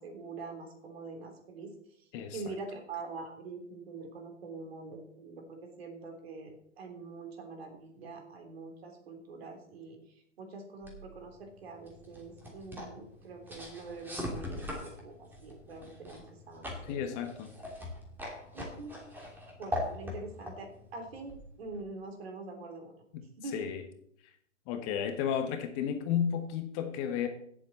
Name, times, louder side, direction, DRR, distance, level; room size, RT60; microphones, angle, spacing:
voice 1, 0.0-2.1 2.3-17.0 18.5-19.0 19.6-23.0 23.4-23.7, right 3 dB, 55° right, 4 dB, 3.4 m, -45 dB
sound 1, 10.8-21.9, left 1 dB, 5° right, 2.9 m, -42 dB
voice 2, 16.8-17.5 23.1-23.2 23.5-23.8 24.7-27.3, left 8 dB, 30° left, 7 dB, 1.2 m, -33 dB
16.5 x 7.6 x 4.2 m, 0.70 s
figure-of-eight pair, 125°, 36 cm